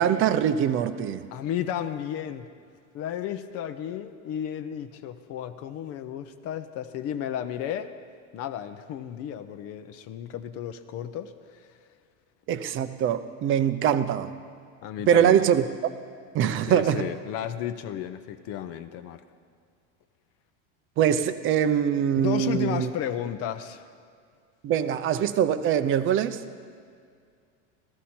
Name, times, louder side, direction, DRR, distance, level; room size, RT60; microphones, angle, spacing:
voice 1, 0.0-1.3 12.5-14.3 15.1-15.6 16.3-17.1 21.0-22.9 24.6-26.4, right 9 dB, 35° right, 12 dB, 0.6 m, -23 dB
voice 2, 1.3-2.5 2.9-7.9 8.3-11.7 14.8-15.5 16.7-19.2 22.1-23.9, left 10 dB, 45° left, 10 dB, 0.6 m, -33 dB
15.0 x 14.0 x 4.3 m, 2.2 s
supercardioid pair, 135°, 35 cm